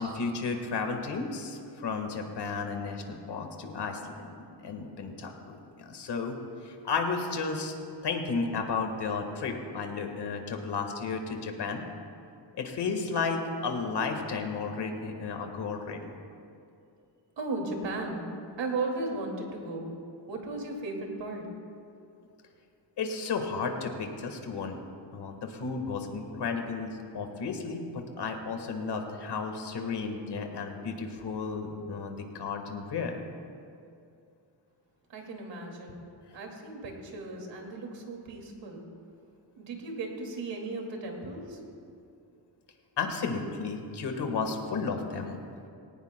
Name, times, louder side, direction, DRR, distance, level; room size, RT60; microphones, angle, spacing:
voice 1, 0.0-4.4 4.6-6.3 6.6-7.7 8.0-11.8 12.6-16.0 23.0-24.8 25.1-27.8 28.2-33.1 43.0-45.4, left 4 dB, 65° left, 4 dB, 1.6 m, -33 dB
voice 2, 17.4-18.3 18.6-19.9 20.3-21.5 35.1-36.0 36.3-38.8 39.6-41.6, right 2 dB, 75° right, 1 dB, 2.3 m, -36 dB
19.5 x 18.0 x 2.2 m, 2.5 s
wide cardioid pair, 150°, 44 cm